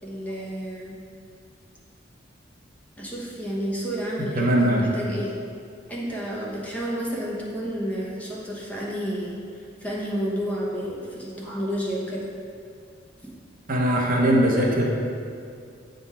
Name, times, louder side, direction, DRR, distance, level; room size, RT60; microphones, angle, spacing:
voice 1, 0.0-0.9 3.0-5.3 5.9-9.4 9.8-12.3, equal, 10° left, -5 dB, 1.0 m, -30 dB
voice 2, 4.4-4.9 13.7-14.9, right 1 dB, 50° right, -2 dB, 0.8 m, -20 dB
7.7 x 3.9 x 4.2 m, 2.4 s
head